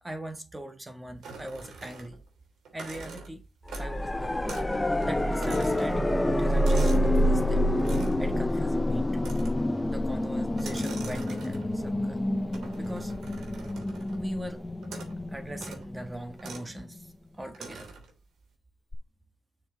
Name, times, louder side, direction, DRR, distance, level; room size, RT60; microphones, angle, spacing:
voice 1, 0.0-2.2 2.7-3.4 3.8-4.4 5.0-7.7 8.2-9.3 9.9-12.2 12.7-13.1 14.1-14.6 15.3-17.9, right 1 dB, 15° right, 1.5 m, -41 dB
sound 1, 1.2-2.3 2.6-4.1 4.5-4.8 5.0-7.2 7.8-8.3 9.2-9.7 10.5-11.8 12.5-14.2 14.8-15.2 15.5-15.8 16.4-16.7 17.5-18.1, right 4 dB, 80° right, 3.0 m, -44 dB
sound 2, 3.7-16.6 18.9-19.0, left 1 dB, 10° left, 0.6 m, -27 dB
7.0 x 6.1 x 3.9 m
cardioid pair, 135°, 0 cm